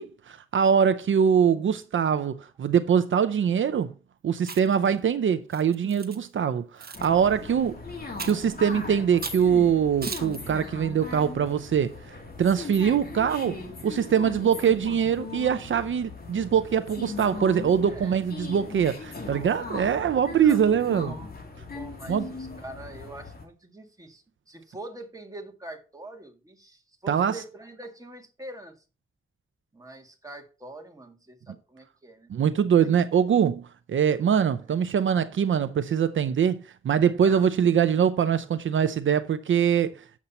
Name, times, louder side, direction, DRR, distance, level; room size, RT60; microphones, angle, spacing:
voice 1, 0.0-3.9 4.2-21.1 22.1-22.3 27.1-27.4 32.3-40.0, right 8 dB, 70° right, 0.6 m, -23 dB
Chewing mastication, 4.4-4.9 5.5-6.2 6.8-7.1 8.2-8.5 9.2-9.5 10.0-10.4, right 5 dB, 50° right, 1.1 m, -37 dB
sound 1, 6.9-23.4, left 3 dB, 50° left, 2.8 m, -39 dB
voice 2, 20.4-21.3 21.6-28.8 29.7-32.3 37.2-37.4, right 2 dB, 15° right, 1.8 m, -44 dB
8.0 x 7.3 x 4.2 m
wide cardioid pair, 100°, 21 cm